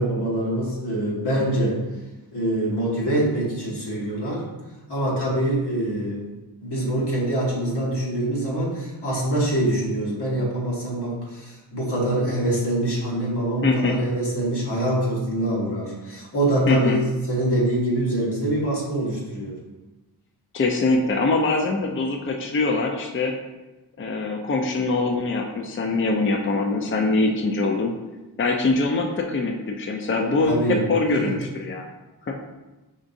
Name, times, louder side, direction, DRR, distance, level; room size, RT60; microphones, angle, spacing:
voice 1, 0.0-1.8 2.3-4.5 4.9-6.3 6.6-17.0 17.3-19.6 30.4-30.8 31.1-31.4, right 1 dB, 75° left, -5 dB, 1.4 m, -24 dB
voice 2, 13.6-14.0 16.7-17.0 20.5-23.4 24.0-27.9 28.4-31.9 32.3-32.4, left 3 dB, 30° left, 2 dB, 0.5 m, -23 dB
5.1 x 3.5 x 2.6 m, 1.1 s
cardioid pair, 45°, 40 cm